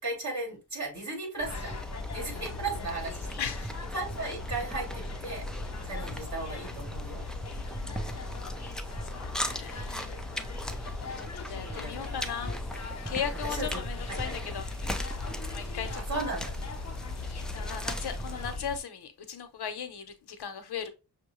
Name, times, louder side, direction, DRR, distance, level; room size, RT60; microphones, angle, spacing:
voice 1, 0.0-1.8 2.1-3.3 3.9-5.5 5.8-7.2 11.6-12.2 13.4-13.8 14.1-14.3 15.9-16.5, right 3 dB, 45° right, 2.7 m, -36 dB
sound 1, 1.4-18.8, left 4 dB, 40° left, 0.7 m, -41 dB
sound 2, 1.4-18.6, equal, ahead, 0.4 m, -38 dB
voice 2, 2.3-2.6 3.4-3.7 7.8-8.7 9.0-14.7 15.5-16.2 16.8-17.1 17.5-20.9, left 7 dB, 80° left, 0.8 m, -38 dB
6.2 x 2.2 x 3.0 m
wide cardioid pair, 90°, 39 cm